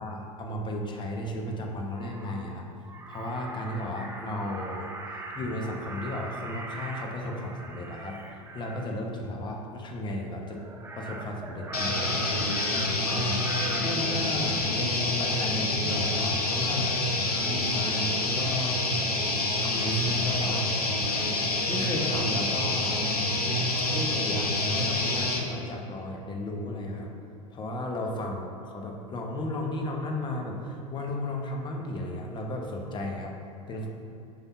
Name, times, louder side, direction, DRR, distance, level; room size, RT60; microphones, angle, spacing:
voice 1, 0.0-2.7 3.1-4.9 5.3-8.2 8.5-10.6 10.9-12.4 13.0-13.4 13.7-17.0 17.4-18.8 19.6-20.7 21.7-23.0 23.9-27.1 27.5-33.4 33.7-33.9, left 1 dB, 25° left, 1 dB, 0.9 m, -34 dB
Crow, 1.5-1.6 1.9-2.5 2.8-8.9 10.5-14.8 15.1-15.5 15.9-16.3 16.6-17.6 18.4-18.7 19.7-20.8 21.0-21.3, right 2 dB, 15° right, 0.6 m, -42 dB
sound 1, 11.7-25.4, left 2 dB, 85° left, 0.8 m, -27 dB
5.7 x 5.4 x 4.1 m, 2.7 s
figure-of-eight pair, 80°, 19 cm